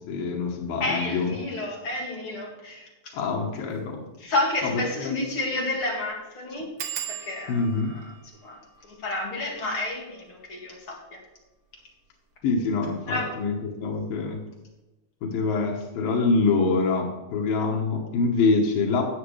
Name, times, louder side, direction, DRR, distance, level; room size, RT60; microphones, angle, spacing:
voice 1, 0.1-1.3 3.1-4.0 4.6-5.2 7.5-8.0 12.4-14.4 15.2-19.0, left 4 dB, 90° left, -1 dB, 2.9 m, -25 dB
voice 2, 0.8-2.9 4.2-6.7 7.1-8.1 8.4-11.2 13.1-13.4, left 2 dB, 45° left, -2 dB, 2.5 m, -30 dB
sound 1, 3.6-3.8 4.2-4.3 4.6-4.7 5.2-5.5 5.7-5.8 6.8-12.1 12.7-13.3 13.6-13.9 14.2-14.3, right 9 dB, 65° right, 2.0 m, -41 dB
17.5 x 6.2 x 3.2 m, 1.1 s
omnidirectional pair, 3.9 m